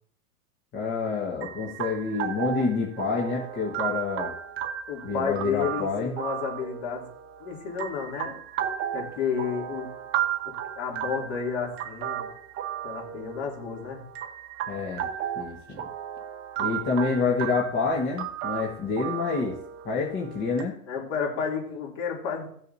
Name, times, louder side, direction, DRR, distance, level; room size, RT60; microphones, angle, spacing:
voice 1, 0.7-4.3 5.0-6.1 14.7-15.1 15.4-15.8 16.6-19.5 19.8-20.7, left 4 dB, 25° left, -3 dB, 1.4 m, -28 dB
sound 1, 1.4-20.6, right 10 dB, 25° right, 1.1 m, -34 dB
voice 2, 4.9-7.0 7.4-8.3 8.9-9.9 10.4-12.3 12.8-14.0 20.9-22.5, left 6 dB, 40° left, -1 dB, 3.1 m, -31 dB
16.0 x 6.4 x 2.8 m, 0.65 s
hypercardioid pair, 130°, 48 cm